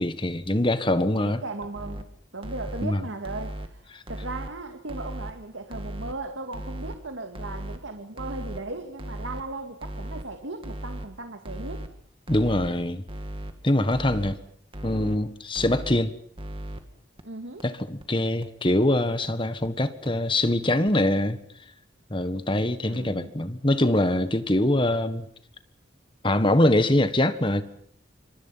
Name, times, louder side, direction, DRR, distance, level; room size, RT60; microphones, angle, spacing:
voice 1, 0.0-1.4 2.8-3.0 12.3-13.0 13.6-14.4 14.8-16.1 17.6-21.4 22.1-25.3 26.2-27.6, left 1 dB, 25° left, 1.6 m, -23 dB
voice 2, 1.2-2.1 2.3-11.9 17.2-17.6 22.9-23.3, right 2 dB, 90° right, 2.2 m, -37 dB
sound 1, 1.6-2.0 2.4-2.9 3.2-3.7 4.1-4.5 4.9-5.3 5.7-6.1 6.5-7.0 7.4-7.8 8.2-8.6 9.0-9.4 9.8-10.2 10.6-11.1 11.5-11.9 12.3-12.7 13.1-13.5 13.9-14.3 14.7-15.2 15.6-16.0 16.4-16.8 17.2-17.3 17.6-17.7 18.0-18.1 18.4-18.5 18.8-18.9 19.2-19.3 19.6-19.7 20.1-20.2 20.5-20.6 20.9-21.0, right 1 dB, 30° right, 2.3 m, -36 dB
27.0 x 25.5 x 5.8 m
head